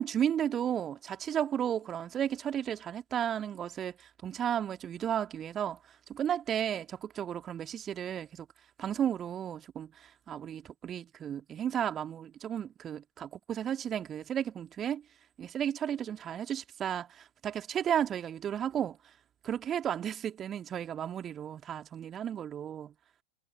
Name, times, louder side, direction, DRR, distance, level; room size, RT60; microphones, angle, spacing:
voice 1, 0.0-8.5 8.8-15.0 15.4-19.1 19.4-22.9, right 9 dB, 25° right, 2.2 m, -33 dB
figure-of-eight pair, 90°, 0 cm